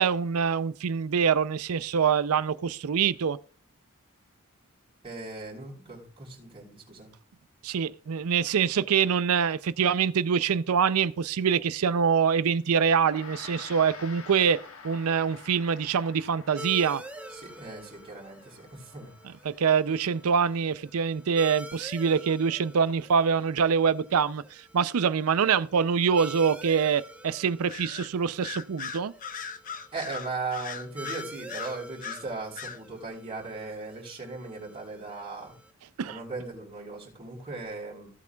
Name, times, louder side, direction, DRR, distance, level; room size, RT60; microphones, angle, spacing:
voice 1, 0.0-3.4 7.6-17.0 19.4-29.1 36.0-36.2, right 6 dB, 80° right, 0.5 m, -25 dB
voice 2, 5.0-7.1 17.3-19.1 29.9-35.5 36.0-38.1, right 3 dB, 25° right, 4.0 m, -38 dB
Gong, 12.9-22.4, left 5 dB, 65° left, 1.5 m, -49 dB
sound 1, 16.6-35.7, right 1 dB, 5° right, 1.0 m, -47 dB
Bird vocalization bird call bird song, 27.7-28.1 28.4-32.2 32.6-32.8, left 6 dB, 40° left, 0.8 m, -38 dB
16.0 x 8.3 x 2.3 m
head